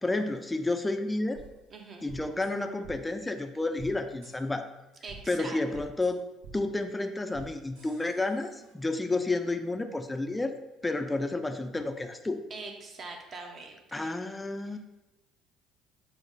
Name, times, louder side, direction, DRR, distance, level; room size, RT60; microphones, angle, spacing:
voice 1, 0.0-1.4 2.0-4.7 5.3-6.2 6.5-10.5 10.8-12.4 13.9-14.8, left 2 dB, 15° left, 8 dB, 0.3 m, -31 dB
sound 1, 1.4-1.5 2.1-2.5 2.8-2.9 3.8-3.9 4.2-4.3 5.1-5.2 5.7-6.1 6.4-6.5 7.3-7.5 7.8-8.7, right 5 dB, 70° right, 0.9 m, -48 dB
voice 2, 1.7-2.1 5.0-5.6 12.5-14.1 14.7-14.8, right 3 dB, 40° right, 3 dB, 0.7 m, -43 dB
5.0 x 2.0 x 3.8 m, 1.0 s
figure-of-eight pair, 55°, 0 cm